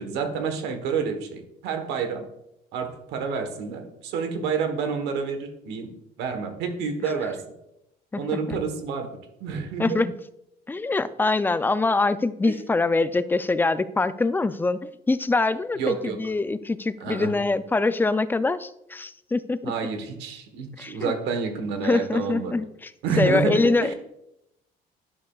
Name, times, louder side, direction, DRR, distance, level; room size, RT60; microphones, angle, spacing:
voice 1, 0.0-2.2 2.7-5.9 6.2-7.4 8.1-9.1 9.4-10.0 12.4-12.6 15.8-16.2 17.0-17.3 19.6-22.5 23.0-23.9, right 5 dB, 90° right, 6 dB, 1.2 m, -28 dB
voice 2, 8.1-8.6 9.8-10.1 10.7-14.8 15.1-19.7 20.8-21.1 21.8-22.9 23.2-23.9, left 3 dB, 10° left, 14 dB, 0.3 m, -24 dB
11.0 x 6.6 x 2.3 m, 0.84 s
cardioid pair, 110°, 17 cm